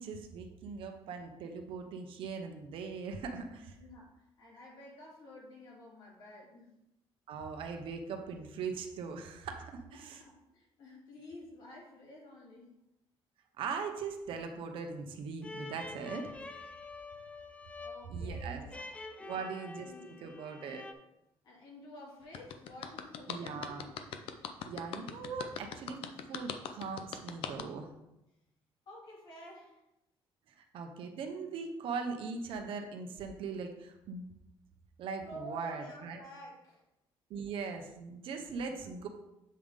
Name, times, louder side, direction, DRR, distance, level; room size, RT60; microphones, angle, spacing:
voice 1, 0.0-3.8 7.3-10.2 13.6-16.5 18.1-18.6 19.2-20.8 23.3-23.8 24.6-26.0 26.3-27.9 30.5-34.2 35.0-36.2 37.3-39.1, right 5 dB, 65° right, 4 dB, 0.9 m, -40 dB
voice 2, 3.8-6.7 9.9-12.7 17.8-18.7 19.2-19.4 19.8-20.1 21.4-24.0 28.9-29.8 35.2-36.8, left 1 dB, 55° left, -4 dB, 2.5 m, -51 dB
sound 1, 15.4-20.9, left 3 dB, 15° left, 0.4 m, -47 dB
sound 2, 22.3-27.6, left 8 dB, 75° left, 0.6 m, -40 dB
7.7 x 3.6 x 5.1 m, 0.90 s
cardioid pair, 155°, 10 cm